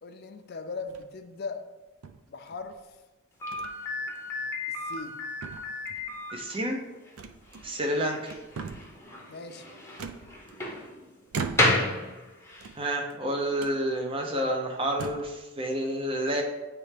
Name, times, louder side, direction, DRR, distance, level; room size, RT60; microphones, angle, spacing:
voice 1, 0.0-1.6 2.3-3.0 4.7-5.1 9.3-9.7, left 4 dB, 45° left, 7 dB, 0.5 m, -39 dB
sound 1, 0.8-1.2 2.0-2.8 3.5-3.8 4.2-4.3 4.8-5.2 5.4-6.1 7.2-7.9 8.2-9.0 10.0-10.8 11.3-12.0 12.5-13.2 13.6-13.8 14.4-14.5 14.9-15.4, right 5 dB, 75° right, 0.4 m, -40 dB
Slam, 3.4-12.7, left 2 dB, 10° left, 0.8 m, -32 dB
voice 2, 6.3-6.8 7.6-8.2 12.8-16.4, right 1 dB, 25° right, 1 dB, 0.6 m, -29 dB
9.1 x 3.2 x 3.3 m, 1.1 s
head